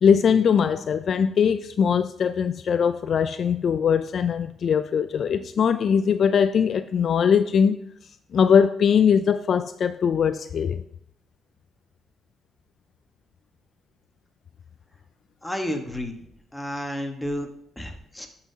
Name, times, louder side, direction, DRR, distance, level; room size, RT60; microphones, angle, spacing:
voice 1, 0.0-7.8 8.3-10.8, left 7 dB, 55° left, 0.3 m, -21 dB
voice 2, 15.4-16.2 16.5-17.5 17.8-18.3, equal, 10° left, 1.2 m, -31 dB
11.0 x 5.6 x 2.8 m
cardioid pair, 90°, 0 cm